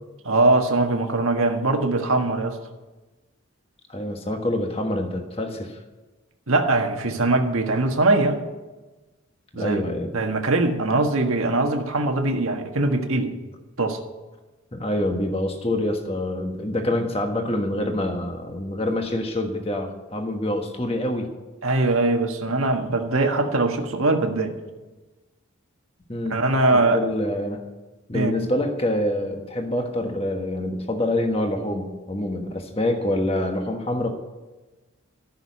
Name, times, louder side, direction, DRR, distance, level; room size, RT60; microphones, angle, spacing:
voice 1, 0.2-2.6 6.5-8.4 9.5-9.8 10.1-13.3 13.8-14.0 21.6-24.5 26.3-27.0 28.1-28.3, right 2 dB, 80° right, 4 dB, 1.6 m, -21 dB
voice 2, 3.9-5.8 9.6-10.1 14.7-21.3 26.1-26.4 26.7-27.6 28.1-34.1, left 1 dB, 25° left, 3 dB, 1.3 m, -26 dB
14.5 x 6.6 x 9.5 m, 1.2 s
head